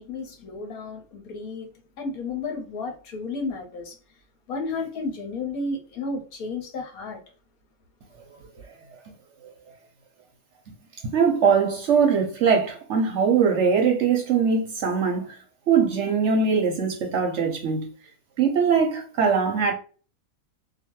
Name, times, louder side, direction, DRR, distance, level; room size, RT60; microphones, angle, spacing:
voice 1, 0.0-1.7 2.0-4.0 4.5-7.2, left 3 dB, 75° left, 1.3 m, -32 dB
voice 2, 11.0-15.3 15.7-17.9 18.4-19.7, right 6 dB, 65° right, 0.8 m, -21 dB
2.9 x 2.2 x 2.9 m
omnidirectional pair, 1.6 m